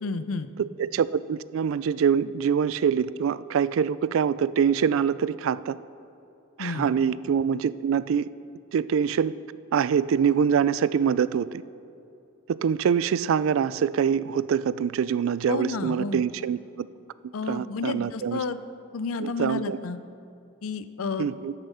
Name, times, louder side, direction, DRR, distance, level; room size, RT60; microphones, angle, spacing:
voice 1, 0.0-0.5 6.6-6.9 15.5-16.2 17.3-18.6 18.9-20.0 20.6-21.3, left 4 dB, 90° left, 13 dB, 0.5 m, -31 dB
voice 2, 0.6-5.8 6.6-8.3 8.7-9.3 9.7-11.6 12.5-16.9 17.5-18.4 19.2-19.8 21.2-21.5, right 7 dB, 75° right, 17 dB, 0.3 m, -24 dB
13.5 x 6.9 x 5.6 m, 2.7 s
head